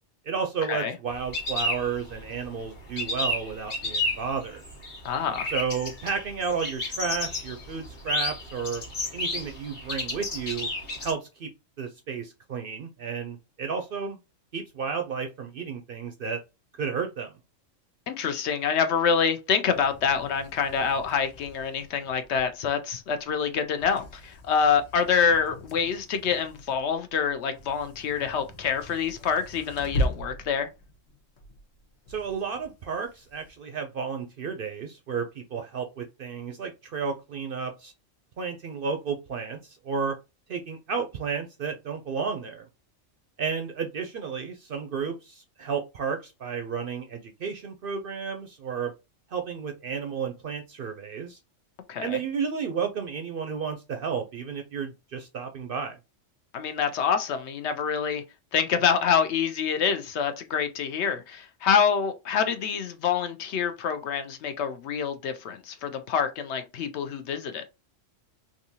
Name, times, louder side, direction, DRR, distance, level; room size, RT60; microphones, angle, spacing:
voice 1, 0.3-4.6 5.5-8.8 9.1-10.7 11.0-11.5 11.8-14.2 14.5-16.4 16.8-17.3 32.1-37.9 38.4-40.2 40.5-42.7 43.4-48.9 49.3-51.4 52.0-55.9, right 6 dB, 60° right, 0.6 m, -32 dB
sound 1, 1.1-2.5 2.8-11.1, left 2 dB, 40° left, 1.2 m, -31 dB
voice 2, 5.0-5.5 18.1-30.7 51.9-52.2 56.5-58.2 58.5-67.6, left 7 dB, 70° left, 0.8 m, -26 dB
sound 2, 19.7-33.6, equal, 85° left, 1.3 m, -39 dB
3.6 x 2.7 x 2.7 m
omnidirectional pair, 1.3 m